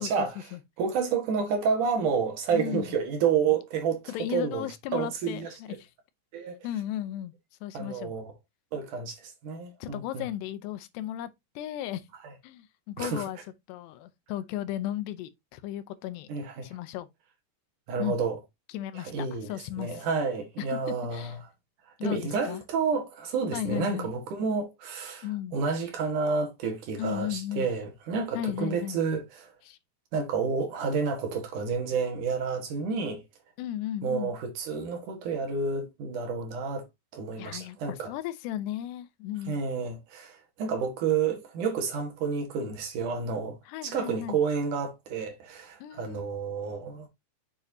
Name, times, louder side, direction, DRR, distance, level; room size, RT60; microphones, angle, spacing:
voice 1, 0.0-0.5 0.8-4.0 4.3-4.7 4.9-5.5 6.3-6.6 7.7-8.3 8.7-10.3 12.2-12.3 13.0-13.2 16.3-16.8 17.9-18.4 18.9-19.5 19.8-21.4 22.0-29.5 30.1-33.2 34.0-36.9 37.1-38.1 39.5-43.6 43.8-47.1, right 5 dB, 60° right, 2.6 m, -30 dB
voice 2, 2.5-3.0 4.1-5.4 5.7-5.9 6.6-7.3 7.6-8.1 9.8-11.3 11.6-12.0 12.4-13.4 13.7-16.3 16.6-17.1 18.0-18.2 18.7-20.1 20.6-21.4 22.0-22.6 23.5-24.1 25.2-25.6 27.0-27.7 28.3-29.0 29.6-29.8 33.6-34.3 37.4-39.6 43.7-44.4 45.8-46.3, left 12 dB, 85° left, 2.9 m, -35 dB
7.1 x 7.0 x 2.7 m
omnidirectional pair, 4.7 m